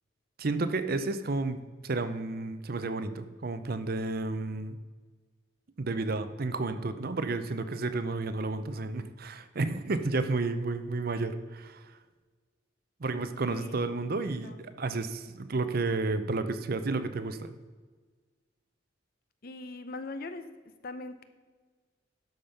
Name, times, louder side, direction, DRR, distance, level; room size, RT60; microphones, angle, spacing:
voice 1, 0.4-4.8 5.8-11.8 13.0-17.5, right 3 dB, 50° right, 11 dB, 0.6 m, -31 dB
voice 2, 13.4-13.8 14.4-14.6 19.4-20.5 20.8-21.2, left 2 dB, 50° left, 10 dB, 0.8 m, -40 dB
12.0 x 5.3 x 5.7 m, 1.4 s
head